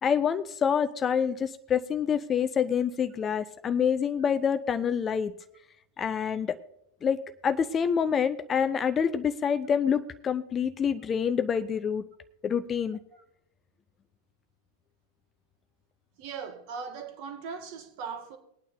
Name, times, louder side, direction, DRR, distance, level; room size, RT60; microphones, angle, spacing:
voice 1, 0.0-5.3 6.0-6.6 7.0-12.0 12.4-13.0, left 7 dB, 25° left, 0.5 m, -27 dB
voice 2, 16.2-18.4, right 6 dB, 45° right, 1.6 m, -39 dB
21.5 x 9.2 x 2.6 m
figure-of-eight pair, 90°, 0 cm